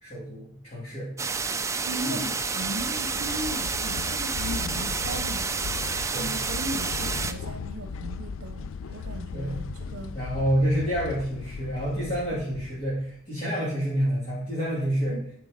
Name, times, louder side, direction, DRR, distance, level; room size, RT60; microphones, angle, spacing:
voice 1, 0.0-1.1 2.0-2.2 6.1-6.3 8.9-9.1 9.3-9.6 10.1-15.1, equal, 30° left, -8 dB, 2.6 m, -28 dB
sound 1, 1.2-7.3, right 4 dB, 15° right, 0.4 m, -29 dB
voice 2, 1.8-10.2 12.3-12.4 15.1-15.2, right 1 dB, 75° right, 8 dB, 0.8 m, -37 dB
sound 2, 2.4-13.2, left 5 dB, 65° left, 0.4 m, -37 dB
10.5 x 4.7 x 5.1 m, 0.64 s
head